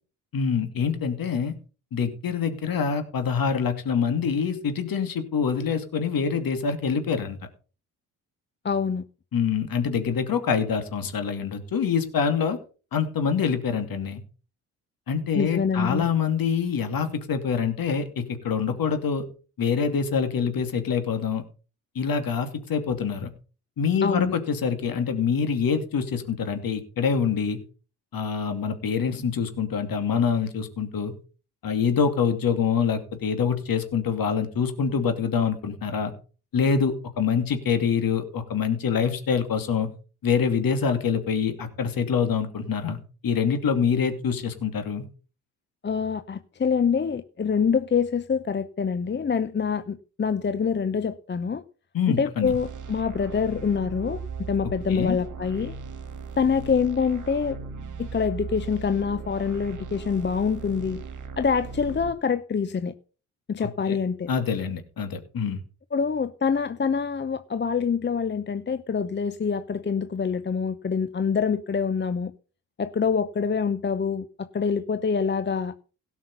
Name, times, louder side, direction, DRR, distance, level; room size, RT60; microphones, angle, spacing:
voice 1, 0.3-1.5 1.9-7.4 9.3-12.6 12.9-14.2 15.1-19.2 19.6-21.4 21.9-23.3 23.8-27.6 28.1-31.1 31.6-36.1 36.5-39.9 40.2-43.0 43.2-45.0 51.9-52.5 54.6-55.2 63.6-64.0 64.3-65.6, left 6 dB, 55° left, 7 dB, 2.7 m, -25 dB
voice 2, 8.6-9.0 15.3-16.1 24.0-24.3 45.8-51.6 52.1-55.7 56.4-57.6 58.0-61.0 61.4-62.9 63.5-64.3 65.9-72.3 72.8-75.7, left 6 dB, 25° left, 12 dB, 0.8 m, -25 dB
sound 1, 52.4-62.1, right 5 dB, 45° right, 1.9 m, -37 dB
17.0 x 6.2 x 5.6 m, 0.37 s
hypercardioid pair, 50°, 41 cm